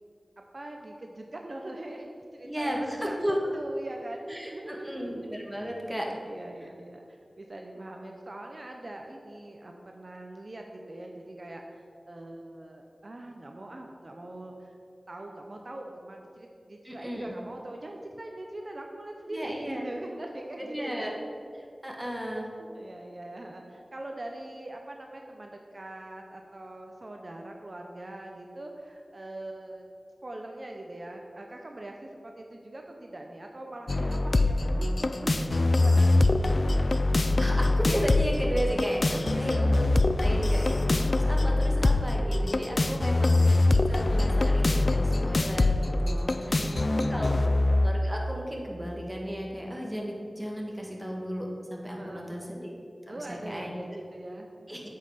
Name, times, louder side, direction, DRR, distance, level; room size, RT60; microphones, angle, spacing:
voice 1, 0.4-5.3 6.2-7.0 7.4-14.8 15.1-21.2 22.6-29.9 30.2-36.5 39.1-39.8 42.7-43.5 46.4-47.4 52.0-52.4 53.1-54.5, right 1 dB, 50° right, 2 dB, 0.7 m, -42 dB
voice 2, 2.4-3.4 4.3-6.1 16.8-17.2 19.3-19.8 20.6-21.2 21.8-22.5 37.4-39.8 40.2-40.9 41.2-43.6 43.9-46.7 47.1-47.3 47.8-52.7 53.1-53.7 54.7-54.8, equal, 10° right, -1 dB, 1.6 m, -34 dB
sound 1, 33.9-47.9, left 2 dB, 55° left, 0.4 m, -24 dB
8.0 x 5.6 x 5.7 m, 2.4 s
wide cardioid pair, 55°, 0 cm